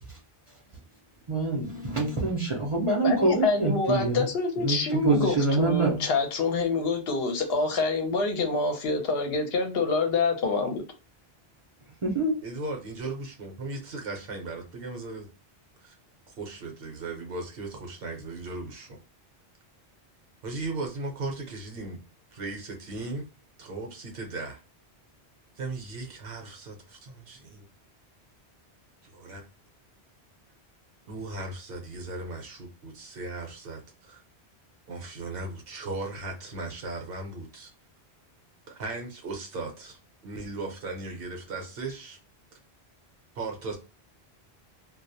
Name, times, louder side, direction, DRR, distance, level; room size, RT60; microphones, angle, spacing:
voice 1, 1.3-4.3 4.6-6.1 12.0-12.4, right 2 dB, 40° right, 0.5 m, -26 dB
voice 2, 3.0-10.8, left 3 dB, 70° left, 0.8 m, -26 dB
voice 3, 12.4-15.3 15.8-15.9 16.3-19.0 20.4-22.0 22.3-23.3 23.6-24.6 25.6-27.6 29.1-29.4 31.1-34.2 34.9-37.7 38.7-40.0 40.2-42.2 43.3-43.8, right 3 dB, 65° right, 0.9 m, -37 dB
2.3 x 2.0 x 2.6 m
omnidirectional pair, 1.1 m